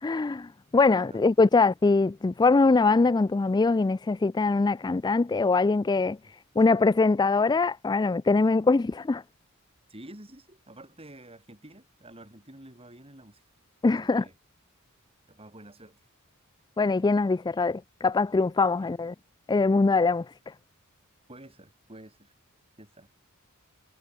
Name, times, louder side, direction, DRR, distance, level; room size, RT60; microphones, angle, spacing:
voice 1, 0.0-6.2 6.6-9.2 13.8-14.3 16.8-19.1 19.5-20.5, left 3 dB, 20° left, 0.3 m, -23 dB
voice 2, 0.9-1.2 6.2-6.3 9.9-13.4 14.0-14.3 15.3-16.0 18.8-18.9 21.3-22.3 22.8-23.1, right 1 dB, 25° right, 7.2 m, -49 dB
head